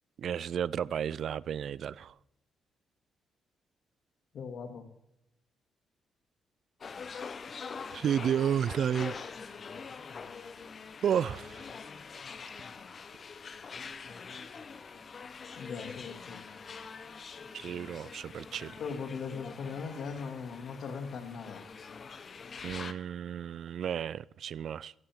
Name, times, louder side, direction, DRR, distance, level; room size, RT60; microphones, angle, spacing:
voice 1, 0.2-2.1 7.9-9.2 11.0-11.6 17.5-18.7 22.6-24.9, right 9 dB, 65° right, 0.4 m, -32 dB
voice 2, 4.3-4.8 15.6-16.4 18.8-21.6, left 5 dB, 65° left, 2.4 m, -39 dB
sound 1, 6.8-22.9, left 5 dB, 45° left, 0.9 m, -44 dB
15.5 x 15.5 x 3.7 m
cardioid pair, 95°, 0 cm